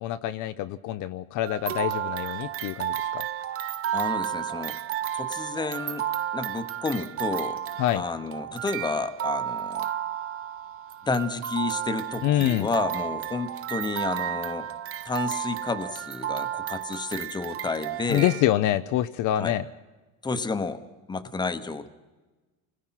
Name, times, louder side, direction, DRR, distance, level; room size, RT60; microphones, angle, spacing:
voice 1, 0.0-3.2 7.8-8.0 12.2-12.7 18.1-19.7, left 13 dB, 50° left, 11 dB, 0.7 m, -26 dB
sound 1, 1.5-18.4, right 11 dB, 35° right, 0.7 m, -32 dB
voice 2, 3.9-4.8 5.1-6.1 6.3-7.6 7.9-9.9 11.0-14.7 15.0-18.3 19.4-19.6 20.2-20.8 21.1-21.9, left 3 dB, 10° left, 10 dB, 1.0 m, -30 dB
28.5 x 20.5 x 5.8 m, 1.2 s
cardioid pair, 160°, 39 cm